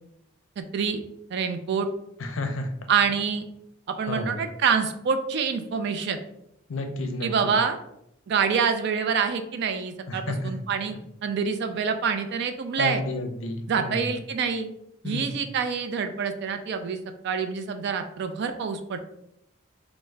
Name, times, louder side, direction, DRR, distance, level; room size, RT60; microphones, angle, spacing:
voice 1, 0.6-1.0 1.3-1.9 2.9-3.4 3.9-6.2 7.2-7.8 8.3-13.0 13.7-14.7 15.0-17.0 17.2-19.0, right 6 dB, 55° right, 8 dB, 0.3 m, -26 dB
voice 2, 2.2-2.7 4.1-4.4 6.7-7.3 10.1-10.5 12.8-14.0 15.0-15.4, left 2 dB, 70° left, 5 dB, 0.5 m, -31 dB
3.5 x 2.0 x 3.2 m, 0.78 s
head